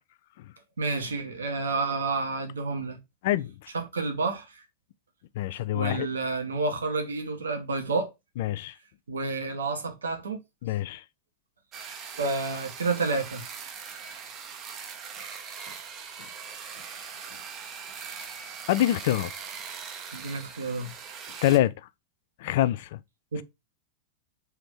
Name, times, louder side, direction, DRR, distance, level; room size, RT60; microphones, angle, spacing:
voice 1, 0.8-3.0 3.7-4.6 5.7-8.1 9.1-10.4 12.2-13.4 20.1-20.9 23.3-23.4, right 3 dB, 70° right, 0.9 m, -30 dB
voice 2, 5.4-6.1 8.4-8.7 10.6-11.0 18.7-19.3 21.4-21.7 22.4-23.0, left 13 dB, 50° left, 0.3 m, -25 dB
sound 1, 11.7-21.6, right 6 dB, 30° right, 0.6 m, -41 dB
3.4 x 2.8 x 3.5 m
figure-of-eight pair, 90°, 0 cm